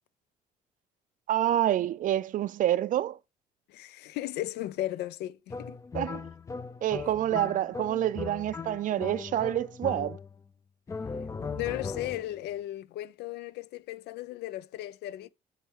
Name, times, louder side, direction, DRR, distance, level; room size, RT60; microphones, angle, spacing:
voice 1, 1.3-3.2 5.9-6.3 6.8-10.2, right 12 dB, 50° right, 0.4 m, -27 dB
voice 2, 3.7-5.8 11.2-15.3, left 15 dB, 80° left, 0.5 m, -36 dB
sound 1, 5.5-10.5 10.9-12.4, left 5 dB, 20° left, 0.4 m, -38 dB
8.2 x 3.3 x 6.3 m
cardioid pair, 110°, 17 cm